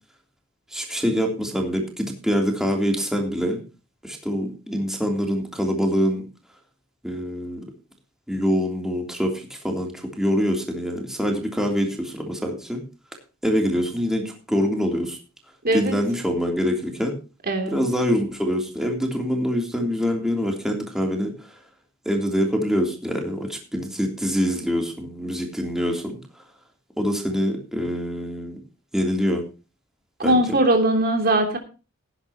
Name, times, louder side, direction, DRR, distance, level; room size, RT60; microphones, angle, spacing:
voice 1, 0.7-3.6 4.0-6.2 7.0-7.6 8.3-12.8 13.4-15.2 15.7-17.1 17.7-21.3 22.0-26.2 27.0-28.6 28.9-29.4 30.2-30.4, equal, ahead, 2 dB, 3.2 m, -25 dB
voice 2, 15.6-15.9 17.5-17.8 30.2-31.6, right 1 dB, 50° right, 5 dB, 3.2 m, -20 dB
18.0 x 11.0 x 3.0 m, 0.32 s
head